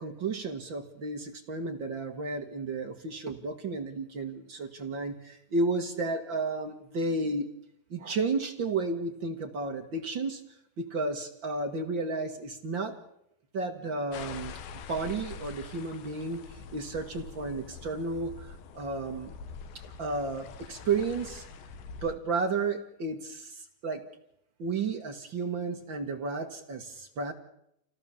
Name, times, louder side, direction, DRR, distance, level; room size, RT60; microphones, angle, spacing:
voice 1, 0.0-7.5 7.9-10.4 10.8-13.0 13.5-14.6 14.9-16.4 16.7-19.3 20.0-21.5 22.0-23.5 23.8-24.0 24.6-27.3, right 3 dB, 45° right, 4 dB, 1.7 m, -32 dB
sound 1, 14.1-22.1, left 6 dB, 80° left, 3.0 m, -45 dB
27.5 x 18.0 x 7.2 m, 0.77 s
omnidirectional pair, 4.1 m